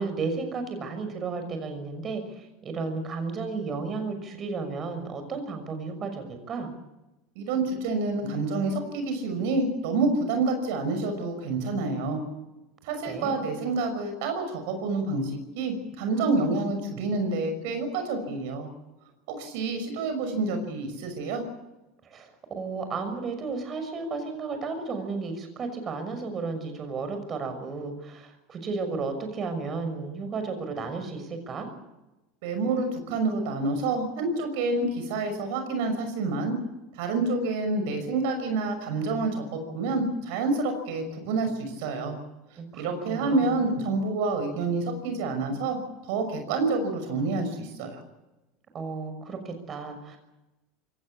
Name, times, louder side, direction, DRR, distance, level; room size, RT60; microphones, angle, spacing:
voice 1, 0.0-6.7 13.0-13.3 22.0-31.7 42.6-43.6 48.7-50.2, right 4 dB, 35° right, 7 dB, 6.0 m, -33 dB
voice 2, 7.4-12.2 12.8-18.7 19.3-21.4 32.4-36.5 37.0-42.2 42.7-45.8 46.1-48.0, right 3 dB, 70° right, 7 dB, 5.9 m, -28 dB
23.0 x 18.0 x 8.5 m, 1.0 s
hypercardioid pair, 90°, 0 cm